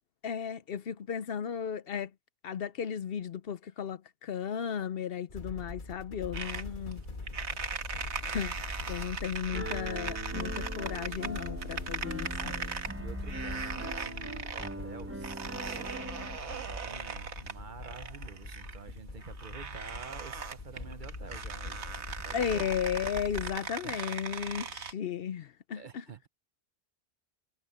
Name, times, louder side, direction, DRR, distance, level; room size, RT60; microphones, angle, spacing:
voice 1, 0.2-2.1 2.4-7.0 8.2-8.6 8.9-12.3 22.3-26.0, left 8 dB, 65° left, 0.8 m, -35 dB
sound 1, 5.3-23.6, left 2 dB, 45° left, 1.9 m, -43 dB
sound 2, 6.3-24.9, right 5 dB, 85° right, 1.7 m, -40 dB
Piano, 9.5-16.4, right 1 dB, 10° right, 1.0 m, -42 dB
voice 2, 12.3-21.9 22.2-22.8 23.8-24.0 25.8-26.3, right 6 dB, 50° right, 0.9 m, -48 dB
omnidirectional pair, 1.1 m